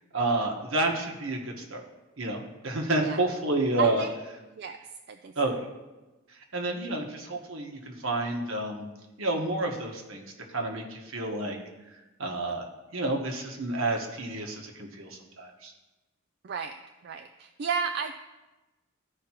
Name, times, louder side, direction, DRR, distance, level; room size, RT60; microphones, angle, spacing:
voice 1, 0.1-1.8 2.2-4.1 5.3-5.5 6.3-8.9 9.2-11.6 11.9-12.6 12.9-15.7, right 2 dB, 70° right, 2 dB, 1.3 m, -30 dB
voice 2, 3.8-4.1 4.6-4.8 5.1-5.3 16.4-16.8 17.0-18.1, right 6 dB, 50° right, 7 dB, 0.3 m, -32 dB
14.5 x 5.0 x 3.0 m, 1.1 s
head